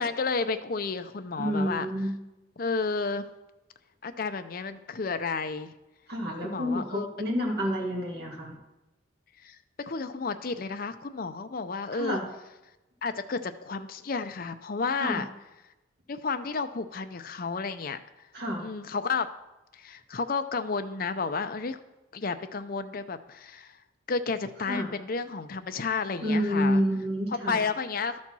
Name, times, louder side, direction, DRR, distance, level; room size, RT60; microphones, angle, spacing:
voice 1, 0.0-1.9 2.6-3.2 4.0-5.7 6.4-7.1 9.4-12.2 13.0-15.3 16.1-18.0 18.6-19.3 19.7-21.8 22.1-23.8 24.1-26.8 27.5-28.2, left 4 dB, 45° left, 9 dB, 0.6 m, -31 dB
voice 2, 1.4-2.1 6.1-8.6 11.9-12.2 15.0-15.2 18.3-18.7 24.7-24.9 26.2-27.6, equal, 55° right, -1 dB, 2.2 m, -29 dB
12.5 x 4.3 x 6.1 m, 0.99 s
head